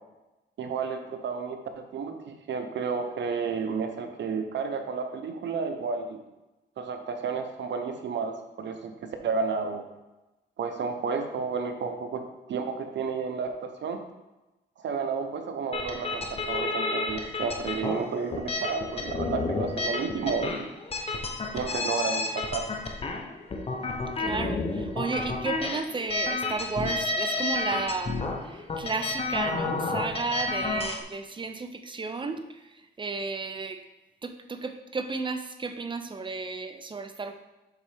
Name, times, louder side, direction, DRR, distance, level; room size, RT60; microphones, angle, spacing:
voice 1, 0.6-6.2 6.8-9.8 10.6-12.2 12.5-14.0 14.8-20.6 21.5-22.6, right 5 dB, 80° right, 6 dB, 0.9 m, -31 dB
sound 1, 15.7-31.0, left 3 dB, 30° left, 0.7 m, -31 dB
voice 2, 24.2-33.8 34.2-37.3, right 4 dB, 25° right, 8 dB, 0.6 m, -33 dB
7.6 x 5.7 x 3.5 m, 1.0 s
wide cardioid pair, 130°, 19 cm